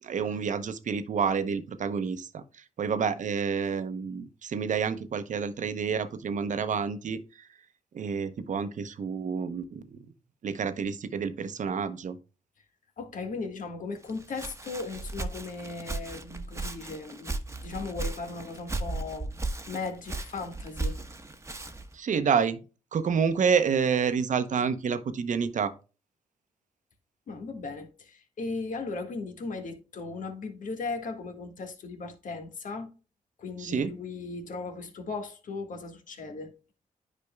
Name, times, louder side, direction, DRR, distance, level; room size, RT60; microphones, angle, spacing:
voice 1, 0.0-2.4 2.8-7.5 7.9-10.0 10.4-12.2 21.9-22.6 22.9-25.7 33.6-33.9, right 6 dB, 60° right, 0.9 m, -28 dB
voice 2, 13.0-19.3 19.7-21.0 27.3-32.9 33.4-36.5, left 3 dB, 65° left, 1.6 m, -37 dB
Walk footsteps, 14.0-22.0, right 2 dB, 20° right, 1.1 m, -36 dB
9.8 x 5.2 x 2.3 m
supercardioid pair, 55°, 14 cm